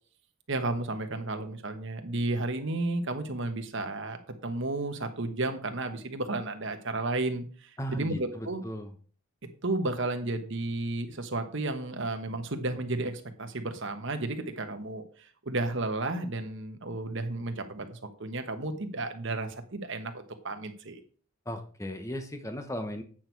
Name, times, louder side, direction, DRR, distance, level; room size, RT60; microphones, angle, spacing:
voice 1, 0.5-8.6 9.6-21.0, right 2 dB, 55° right, 6 dB, 1.2 m, -33 dB
voice 2, 7.8-8.9 21.4-23.0, equal, 15° left, 7 dB, 1.0 m, -36 dB
8.8 x 6.2 x 4.6 m, 0.42 s
head